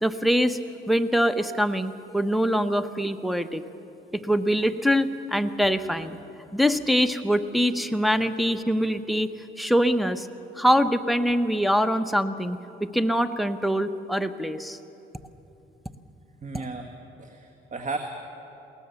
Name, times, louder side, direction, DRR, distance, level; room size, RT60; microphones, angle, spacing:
voice 1, 0.0-0.6 0.9-3.6 4.1-6.2 6.5-9.3 9.6-10.3 10.6-14.8 16.5-16.6, equal, ahead, 11 dB, 0.9 m, -24 dB
voice 2, 16.4-16.9 17.2-18.0, right 3 dB, 40° right, 4 dB, 1.6 m, -34 dB
21.5 x 18.5 x 7.0 m, 3.0 s
cardioid pair, 90°, 20 cm